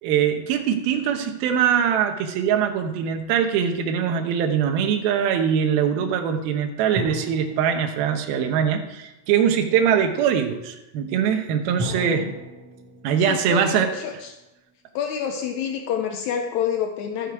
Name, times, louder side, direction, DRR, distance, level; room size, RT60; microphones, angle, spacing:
voice 1, 0.0-12.3 13.0-13.9, right 8 dB, 85° right, 5 dB, 2.8 m, -22 dB
sound 1, 7.0-9.3 11.8-14.8, equal, 55° right, 1.6 m, -38 dB
voice 2, 11.8-12.3 13.3-14.3 14.9-17.3, left 8 dB, 90° left, 4 dB, 1.6 m, -28 dB
13.5 x 6.5 x 4.7 m, 0.97 s
omnidirectional pair, 4.3 m